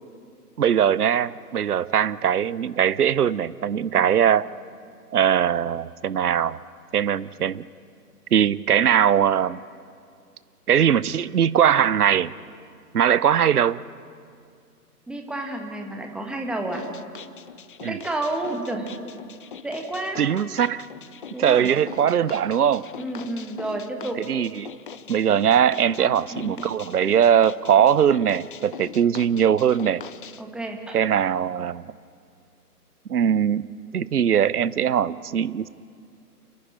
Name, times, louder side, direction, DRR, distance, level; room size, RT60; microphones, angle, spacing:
voice 1, 0.6-4.5 5.1-6.6 6.9-7.7 8.3-9.6 10.7-12.3 12.9-13.8 17.8-18.0 20.2-20.8 21.4-22.8 24.3-24.7 25.1-30.0 30.9-31.8 33.1-33.6 33.9-35.7, right 9 dB, 70° right, 18 dB, 0.7 m, -21 dB
voice 2, 15.1-16.8 17.9-19.0 19.6-20.2 21.3-21.7 23.0-24.2 26.0-26.6 30.4-31.0, right 2 dB, ahead, 2 dB, 1.3 m, -31 dB
sound 1, 16.7-30.4, left 7 dB, 35° left, 0.6 m, -42 dB
29.5 x 11.0 x 9.8 m, 2.2 s
figure-of-eight pair, 130°, 47 cm